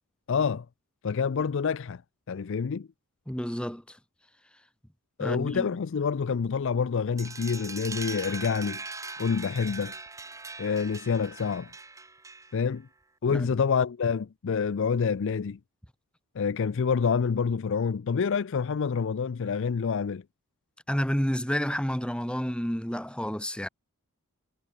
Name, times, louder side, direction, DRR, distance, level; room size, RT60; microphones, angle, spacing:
voice 1, 0.3-0.7 1.0-2.0 2.3-2.9 5.2-8.8 9.2-9.9 10.6-11.7 12.5-12.9 13.2-15.6 16.4-20.2, left 6 dB, 60° left, 0.4 m, -27 dB
voice 2, 3.3-4.0 5.2-5.7 13.3-13.5 20.9-23.7, equal, 5° left, 1.8 m, -30 dB
sound 1, 7.2-12.7, right 3 dB, 15° right, 1.3 m, -41 dB
head